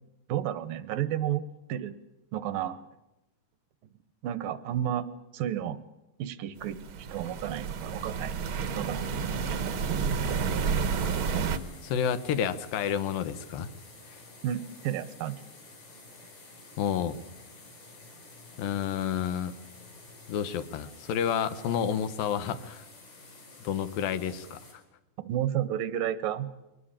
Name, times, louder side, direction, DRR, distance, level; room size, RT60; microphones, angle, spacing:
voice 1, 0.3-1.4 1.7-2.0 2.3-2.8 4.2-5.1 5.3-5.8 6.2-6.8 7.1-8.4 8.8-9.0 14.4-15.4 25.2-26.5, right 11 dB, 80° right, 15 dB, 2.7 m, -31 dB
sound 1, 6.7-11.6, right 6 dB, 60° right, 1.5 m, -30 dB
sound 2, 9.7-24.7, left 2 dB, 70° left, 7.8 m, -51 dB
voice 2, 11.8-13.7 14.1-14.2 16.8-17.2 18.6-19.6 20.3-22.8 23.6-24.6, left 8 dB, 85° left, 11 dB, 2.9 m, -30 dB
23.0 x 18.0 x 8.9 m, 0.99 s
omnidirectional pair, 4.0 m